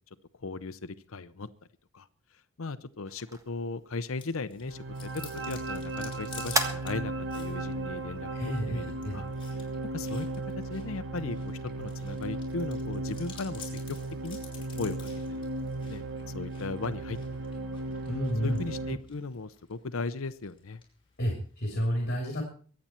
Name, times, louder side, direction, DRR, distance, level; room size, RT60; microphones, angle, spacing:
voice 1, 0.4-1.5 1.9-2.1 2.6-8.3 8.7-9.3 9.5-9.7 9.9-10.3 10.7-13.8 14.2-14.4 14.8-15.5 15.9-16.0 16.3-17.2 18.4-20.8, left 3 dB, 75° left, 13 dB, 0.7 m, -37 dB
sound 1, 3.1-10.0, right 2 dB, 15° right, 1.4 m, -39 dB
Chewing mastication, 4.2-21.8, left 6 dB, 25° left, 5.0 m, -53 dB
sound 2, 4.6-19.0, right 2 dB, 55° right, 1.4 m, -36 dB
voice 2, 8.3-9.2 18.1-18.6 21.2-22.4, equal, 50° left, 2 dB, 2.9 m, -30 dB
23.5 x 8.7 x 4.4 m, 0.43 s
head